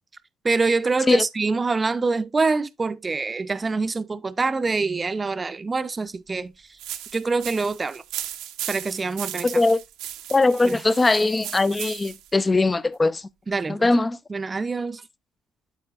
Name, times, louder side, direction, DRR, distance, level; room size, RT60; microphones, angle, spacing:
voice 1, 0.4-6.5 7.1-8.0 8.7-9.5 10.6-10.8 13.5-13.9 14.3-15.0, right 4 dB, 25° right, 0.6 m, -25 dB
sound 1, 6.8-12.3, right 12 dB, 85° right, 0.8 m, -36 dB
voice 2, 9.4-9.8 10.3-13.3 13.7-14.2, left 2 dB, 20° left, 0.4 m, -20 dB
12.5 x 4.3 x 2.4 m
cardioid pair, 100°, 0 cm